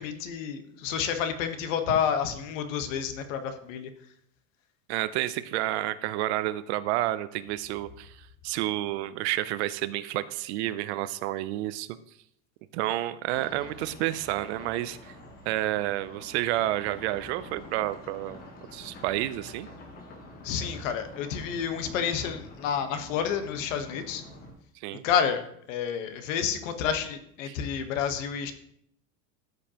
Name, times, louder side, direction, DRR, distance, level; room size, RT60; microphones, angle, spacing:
voice 1, 0.0-3.9 20.4-24.2 25.0-25.4 25.7-28.5, left 8 dB, 80° left, 7 dB, 1.3 m, -29 dB
voice 2, 4.9-12.0 12.7-15.1 15.5-18.4 18.7-19.7 24.8-25.0 27.5-27.6, right 15 dB, 60° right, 14 dB, 0.6 m, -30 dB
sound 1, 13.3-24.5, left 2 dB, 25° left, 1.3 m, -47 dB
13.0 x 5.2 x 2.9 m, 0.69 s
supercardioid pair, 175°, 38 cm